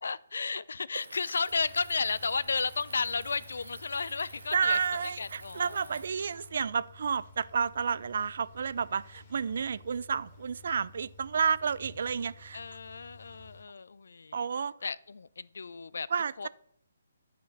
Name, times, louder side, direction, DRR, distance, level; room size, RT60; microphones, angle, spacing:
voice 1, 0.0-6.0 12.5-14.5 14.8-16.1 16.4-16.5, left 4 dB, 70° left, 20 dB, 0.4 m, -33 dB
sound 1, 0.9-6.1, right 3 dB, 80° right, 1.1 m, -50 dB
sound 2, 1.5-13.6, left 3 dB, 30° left, 2.3 m, -54 dB
voice 2, 4.5-12.6 14.3-14.7 16.1-16.5, right 6 dB, 60° right, 19 dB, 0.3 m, -31 dB
10.0 x 5.0 x 5.7 m, 0.69 s
figure-of-eight pair, 140°, 0 cm